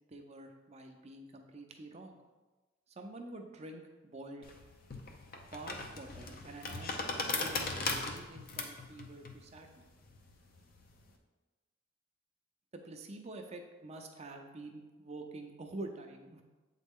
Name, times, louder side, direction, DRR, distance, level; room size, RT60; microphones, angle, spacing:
voice 1, 0.1-2.2 3.0-4.5 5.4-9.9 12.7-16.4, right 2 dB, 35° right, 4 dB, 0.6 m, -47 dB
sound 1, 4.4-11.1, left 3 dB, 50° left, 0.7 m, -39 dB
7.6 x 4.1 x 3.6 m, 1.2 s
head